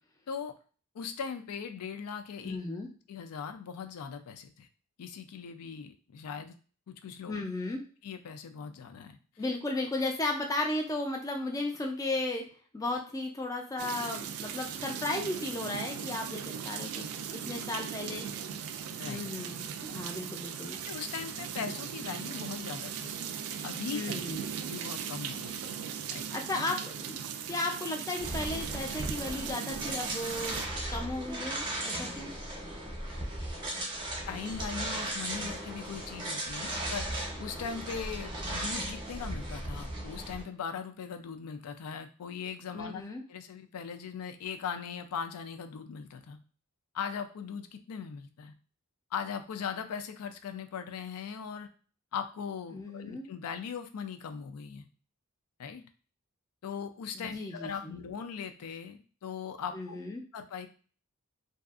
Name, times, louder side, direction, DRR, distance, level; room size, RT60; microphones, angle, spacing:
voice 1, 0.9-2.6 3.1-4.7 5.0-6.5 6.9-7.4 8.0-9.2 19.0-19.2 20.8-23.3 23.6-24.0 24.7-25.7 26.1-26.3 34.3-43.0 43.3-46.4 46.9-48.5 49.1-51.7 52.1-54.8 55.6-55.9 56.6-60.0 60.3-60.7, left 6 dB, 85° left, 8 dB, 0.4 m, -39 dB
voice 2, 2.4-2.9 7.3-7.8 9.4-12.5 12.7-18.3 19.1-20.8 23.9-24.5 26.3-27.2 27.5-30.6 30.9-32.3 42.7-43.2 52.7-53.3 57.1-58.0 59.7-60.2, left 2 dB, 15° left, 2 dB, 0.3 m, -35 dB
sound 1, 13.8-30.7, right 8 dB, 70° right, 0.3 m, -38 dB
sound 2, 28.2-40.4, right 1 dB, 20° right, 0.6 m, -37 dB
2.6 x 2.4 x 2.4 m, 0.40 s
head